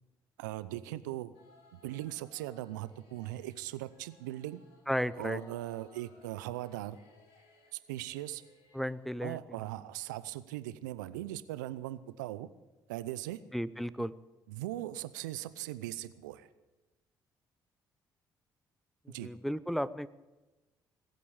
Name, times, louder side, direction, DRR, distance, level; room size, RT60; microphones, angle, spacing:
voice 1, 0.4-1.3 1.7-4.6 5.1-7.0 7.7-8.4 9.2-12.5 12.9-13.4 14.0-14.1 14.5-16.5 19.1-19.3, right 15 dB, 80° right, 16 dB, 0.6 m, -39 dB
sound 1, 1.3-9.1, left 2 dB, 70° left, 3.6 m, -63 dB
voice 2, 4.9-5.4 8.7-9.4 13.5-14.1 19.2-20.1, equal, ahead, 17 dB, 0.8 m, -33 dB
19.5 x 8.5 x 8.7 m, 1.1 s
hypercardioid pair, 50°, 10 cm